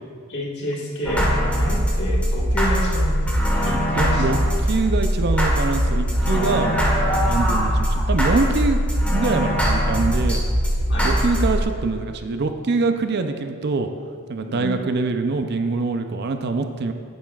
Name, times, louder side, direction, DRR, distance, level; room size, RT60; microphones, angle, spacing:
voice 1, 0.3-3.3 3.6-4.4 6.2-6.9 10.9-11.2 14.4-14.8, left 1 dB, 55° left, -4 dB, 1.7 m, -29 dB
sound 1, 1.1-11.6, equal, 5° left, 1.4 m, -21 dB
voice 2, 4.0-4.4 4.6-8.8 9.1-10.4 11.0-13.9 14.3-16.9, right 3 dB, 55° right, 7 dB, 0.5 m, -24 dB
10.5 x 9.7 x 2.4 m, 2.1 s
head